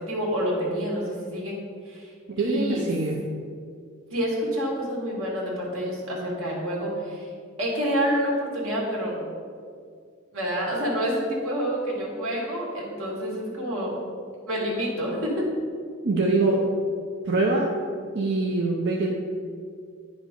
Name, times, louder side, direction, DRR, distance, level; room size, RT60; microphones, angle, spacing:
voice 1, 0.0-1.5 1.9-2.1 2.4-2.8 4.1-7.3 7.6-9.2 10.3-13.9 14.5-15.3, equal, 90° right, -3 dB, 2.0 m, -28 dB
voice 2, 2.4-3.2 16.0-16.6 17.2-17.7 18.1-19.1, right 3 dB, 60° right, -2 dB, 0.7 m, -23 dB
9.6 x 5.2 x 3.7 m, 2.2 s
head